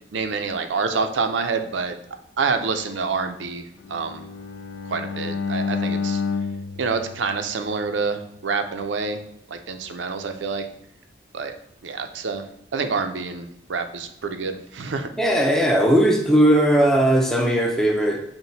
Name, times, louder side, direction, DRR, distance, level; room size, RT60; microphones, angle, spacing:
voice 1, 0.1-1.9 2.4-4.2 4.9-6.2 6.8-9.2 9.5-10.7 11.3-11.5 11.8-12.4 12.7-15.1, right 4 dB, 85° right, 7 dB, 0.5 m, -27 dB
Bowed string instrument, 3.8-8.0, left 5 dB, 80° left, 0.3 m, -29 dB
voice 2, 15.2-18.2, right 1 dB, ahead, 1 dB, 0.5 m, -18 dB
5.8 x 2.2 x 3.9 m, 0.75 s
head